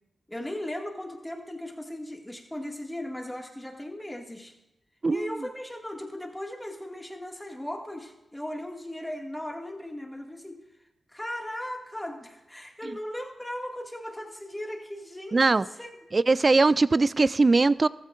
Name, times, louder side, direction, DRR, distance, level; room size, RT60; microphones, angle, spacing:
voice 1, 0.3-4.5 5.1-10.6 11.1-15.9, left 1 dB, 10° left, 1 dB, 2.1 m, -37 dB
voice 2, 5.0-5.3 15.3-15.7 16.1-17.9, right 3 dB, 40° right, 18 dB, 0.4 m, -21 dB
14.5 x 14.0 x 2.6 m, 0.95 s
supercardioid pair, 45°, 0 cm